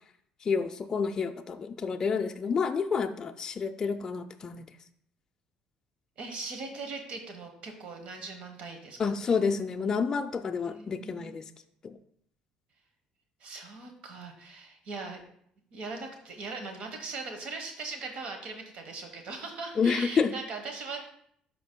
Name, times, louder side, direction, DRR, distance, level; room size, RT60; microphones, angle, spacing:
voice 1, 0.4-4.7 9.0-11.4 11.8-12.0 19.8-20.3, left 5 dB, 30° left, 5 dB, 0.4 m, -29 dB
voice 2, 6.2-9.3 10.6-11.4 13.4-15.2 15.7-21.1, right 3 dB, 60° right, 5 dB, 1.1 m, -40 dB
12.5 x 5.1 x 2.2 m, 0.69 s
cardioid pair, 130°, 2 cm